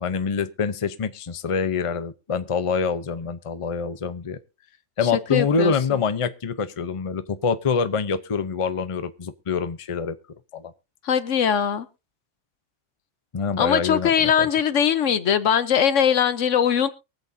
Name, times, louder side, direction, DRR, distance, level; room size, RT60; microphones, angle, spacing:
voice 1, 0.0-4.4 5.0-10.2 10.5-10.7 13.3-14.5, left 5 dB, 30° left, 0.7 m, -25 dB
voice 2, 5.3-5.7 11.0-11.9 13.6-16.9, left 8 dB, 75° left, 1.2 m, -21 dB
23.5 x 8.0 x 2.7 m
omnidirectional pair, 1.3 m